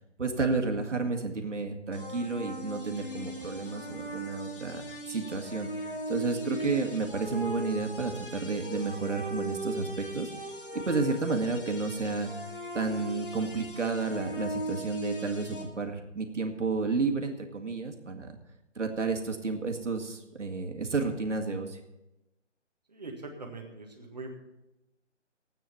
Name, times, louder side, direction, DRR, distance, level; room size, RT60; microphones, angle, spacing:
voice 1, 0.2-10.3 10.7-12.3 12.7-18.4 18.8-21.8, right 4 dB, 70° right, 4 dB, 2.1 m, -31 dB
sound 1, 1.9-15.6, right 1 dB, 45° left, 1.7 m, -39 dB
voice 2, 22.9-24.3, right 3 dB, 35° right, 2 dB, 1.8 m, -42 dB
13.5 x 9.1 x 5.7 m, 0.94 s
figure-of-eight pair, 180°, 37 cm